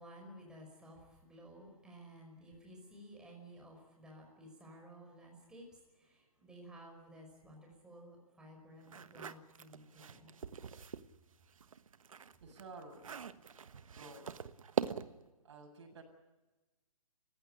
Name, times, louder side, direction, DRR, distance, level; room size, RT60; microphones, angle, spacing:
voice 1, 0.0-10.4, equal, 5° right, 0 dB, 5.3 m, -55 dB
sound 1, 8.8-11.1 11.5-15.3, right 6 dB, 65° right, 1.3 m, -42 dB
voice 2, 12.1-13.5 13.9-14.3 15.4-16.0, right 3 dB, 50° right, 2 dB, 7.5 m, -53 dB
28.0 x 16.0 x 10.0 m, 1.1 s
hypercardioid pair, 165°, 18 cm